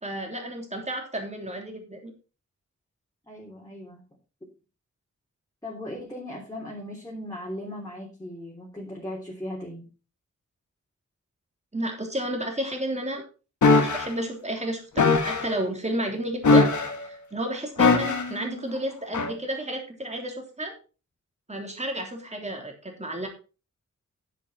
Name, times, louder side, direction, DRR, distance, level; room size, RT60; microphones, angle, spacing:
voice 1, 0.0-2.1 11.7-13.2 13.7-16.7 17.0-20.7 21.5-23.3, right 1 dB, 25° right, 2 dB, 3.3 m, -32 dB
voice 2, 3.3-4.0 5.6-9.9, left 1 dB, 10° left, -3 dB, 3.3 m, -38 dB
sound 1, 13.6-14.1 15.0-15.5 16.4-17.1 17.8-18.4 19.1-19.3, left 3 dB, 80° left, 1.7 m, -20 dB
9.9 x 8.5 x 4.3 m, 0.34 s
wide cardioid pair, 110°, 29 cm